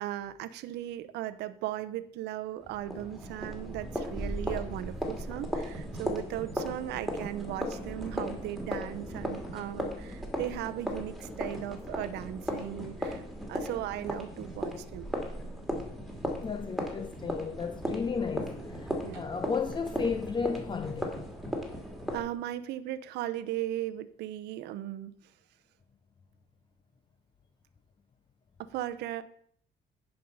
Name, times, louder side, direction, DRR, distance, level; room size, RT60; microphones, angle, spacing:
voice 1, 0.0-15.1 19.0-19.3 22.1-25.1 28.6-29.2, right 13 dB, 85° right, 0.7 m, -37 dB
sound 1, 2.6-22.2, equal, ahead, 2.4 m, -36 dB
voice 2, 16.4-21.1, left 5 dB, 25° left, 0.7 m, -34 dB
10.0 x 5.4 x 5.4 m
cardioid pair, 110°, 17 cm